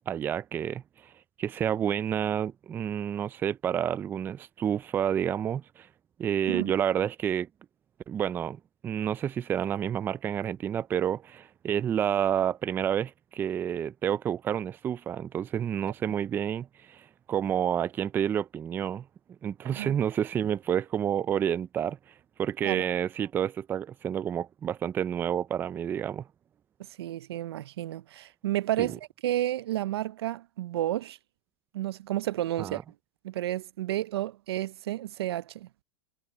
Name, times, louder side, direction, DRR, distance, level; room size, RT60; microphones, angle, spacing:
voice 1, 0.1-1.1 1.4-5.9 6.2-7.5 8.1-19.1 19.4-26.3 28.8-28.9 32.6-32.8, right 9 dB, 15° right, 0.4 m, -29 dB
voice 2, 27.0-31.2 31.7-32.8 33.2-35.8, right 13 dB, 80° right, 0.5 m, -31 dB
supercardioid pair, 145°, 13 cm